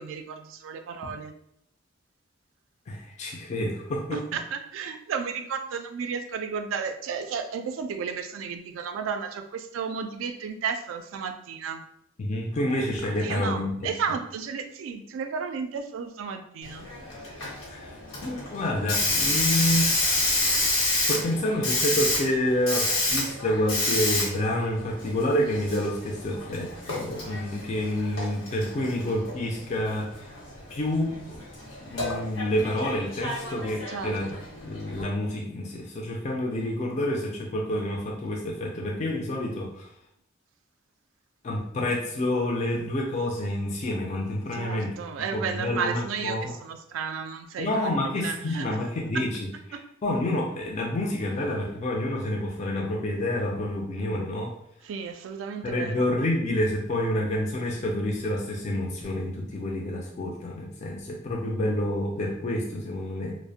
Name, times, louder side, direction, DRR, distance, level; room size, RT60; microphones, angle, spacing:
voice 1, 0.0-1.3 4.1-11.9 13.2-16.9 33.9-34.4 44.5-47.9 48.2-48.7 49.7-49.8 54.8-56.1, right 6 dB, 75° right, 7 dB, 0.3 m, -33 dB
voice 2, 2.9-4.2 12.2-13.9 17.4-17.9 18.2-19.9 21.0-30.3 30.7-31.4 31.8-34.4 34.6-39.9 41.4-44.9 45.3-46.5 47.6-54.5 55.6-63.4, left 1 dB, 35° left, -1 dB, 0.3 m, -28 dB
Hiss, 16.6-35.0, left 2 dB, 85° left, 0.9 m, -30 dB
2.4 x 2.0 x 2.6 m, 0.73 s
head